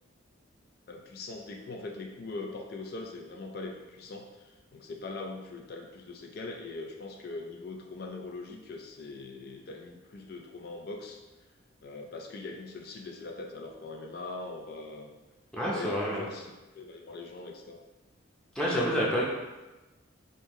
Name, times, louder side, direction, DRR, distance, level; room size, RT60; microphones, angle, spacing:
voice 1, 0.9-11.2 11.8-15.1 15.7-17.8, left 3 dB, 50° left, 2 dB, 0.4 m, -41 dB
voice 2, 15.5-16.2 18.5-19.2, equal, 5° left, -6 dB, 0.7 m, -28 dB
5.3 x 2.6 x 3.1 m, 1.1 s
head